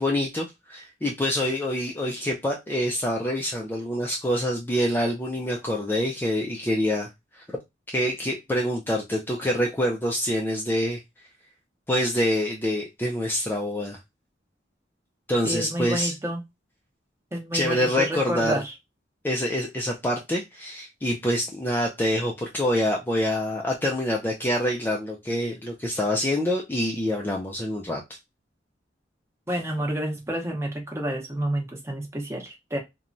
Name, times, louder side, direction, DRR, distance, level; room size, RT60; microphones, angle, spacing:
voice 1, 0.0-7.1 7.3-7.4 7.9-11.0 11.9-14.0 15.3-16.1 17.5-18.6 19.2-28.0, left 1 dB, 10° left, 0.4 m, -26 dB
voice 2, 15.4-16.4 17.3-18.7 29.5-32.8, right 1 dB, 15° right, 0.7 m, -29 dB
2.9 x 2.2 x 2.5 m
head